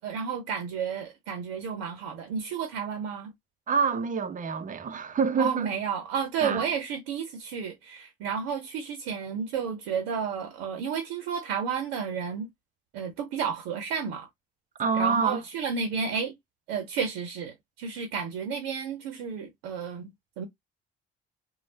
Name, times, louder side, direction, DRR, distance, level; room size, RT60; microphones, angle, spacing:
voice 1, 0.0-3.3 5.4-12.5 12.9-14.3 14.9-16.3 16.7-20.5, right 6 dB, 75° right, 0.6 m, -32 dB
voice 2, 3.7-5.7 6.4-6.6 14.8-15.4, right 5 dB, 25° right, 0.6 m, -27 dB
3.1 x 2.2 x 2.6 m
hypercardioid pair, 55°, 29 cm